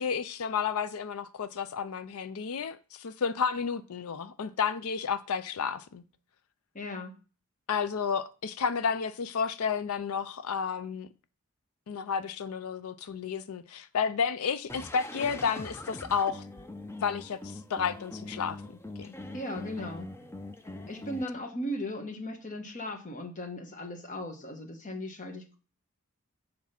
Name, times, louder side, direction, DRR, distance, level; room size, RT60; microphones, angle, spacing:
voice 1, 0.0-6.0 7.7-11.1 11.9-16.5 17.0-19.2, left 6 dB, 85° left, 0.5 m, -31 dB
voice 2, 6.7-7.1 19.3-20.3 20.9-25.6, left 1 dB, 35° left, 1.3 m, -37 dB
sound 1, 14.7-21.2, left 2 dB, 10° left, 0.5 m, -42 dB
7.2 x 4.7 x 5.7 m
head